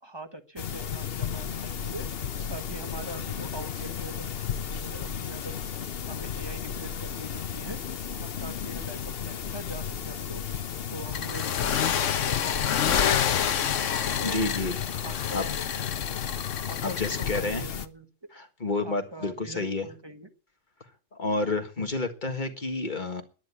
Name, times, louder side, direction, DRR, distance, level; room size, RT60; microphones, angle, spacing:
voice 1, 0.0-2.1 2.5-4.3 4.7-5.6 6.1-7.8 8.2-10.4 10.9-13.2 14.2-14.5 15.0-15.5 16.7-18.1 18.8-20.3, right 1 dB, 20° right, 1.4 m, -42 dB
sound 1, 0.6-17.9, left 8 dB, 55° left, 1.0 m, -34 dB
sound 2, 11.1-17.4, left 8 dB, 80° left, 1.2 m, -28 dB
voice 2, 14.2-14.8 15.3-15.4 16.8-17.6 18.3-19.9 21.1-23.2, left 3 dB, 40° left, 1.8 m, -30 dB
10.5 x 10.0 x 8.3 m
omnidirectional pair, 1.3 m